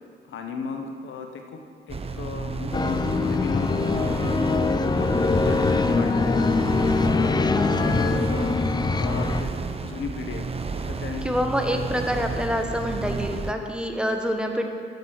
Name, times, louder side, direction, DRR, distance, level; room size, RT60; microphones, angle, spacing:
voice 1, 0.3-1.6 1.9-4.3 5.0-6.4 7.0-8.5 9.0-9.5 9.8-10.5 10.9-11.3, left 5 dB, 80° left, 4 dB, 1.0 m, -35 dB
sound 1, 1.9-13.5, right 4 dB, 30° right, 0.6 m, -32 dB
sound 2, 2.7-9.4, left 4 dB, 20° left, 0.4 m, -23 dB
voice 2, 7.5-8.0 11.2-14.6, equal, 5° right, 4 dB, 1.0 m, -27 dB
9.2 x 7.5 x 6.2 m, 2.3 s
cardioid pair, 85°, 20 cm